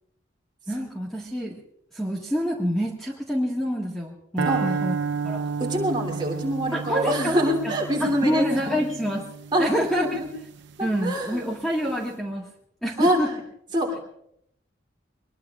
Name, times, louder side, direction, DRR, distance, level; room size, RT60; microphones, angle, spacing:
voice 1, 0.7-1.6 1.9-5.0 5.2-5.4 6.7-7.7 8.0-9.3 9.6-10.2 10.8-12.5 12.8-13.3, equal, ahead, -4 dB, 1.8 m, -27 dB
sound 1, 4.4-10.7, right 5 dB, 65° right, 0.8 m, -32 dB
voice 2, 5.6-8.8 9.5-9.7 10.0-10.3 10.8-11.5 13.0-13.4 13.7-14.0, right 1 dB, 25° right, -1 dB, 3.1 m, -25 dB
24.0 x 21.0 x 2.5 m, 0.74 s
head